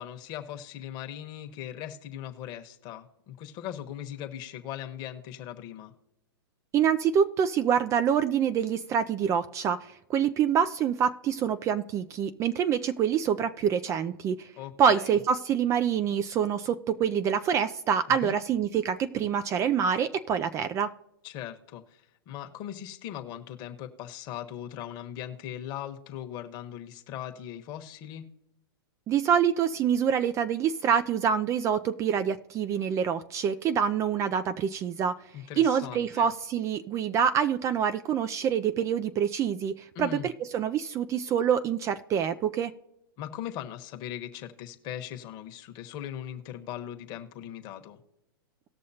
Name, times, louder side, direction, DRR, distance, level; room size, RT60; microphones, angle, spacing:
voice 1, 0.0-5.9 14.6-15.2 18.2-18.4 21.2-28.2 35.3-36.3 39.9-40.3 43.2-48.0, left 11 dB, 35° left, 6 dB, 1.1 m, -39 dB
voice 2, 6.7-14.5 14.8-20.9 29.1-35.1 35.6-42.7, right 8 dB, 25° right, 12 dB, 0.4 m, -26 dB
18.5 x 6.3 x 2.8 m, 0.89 s
hypercardioid pair, 125°, 12 cm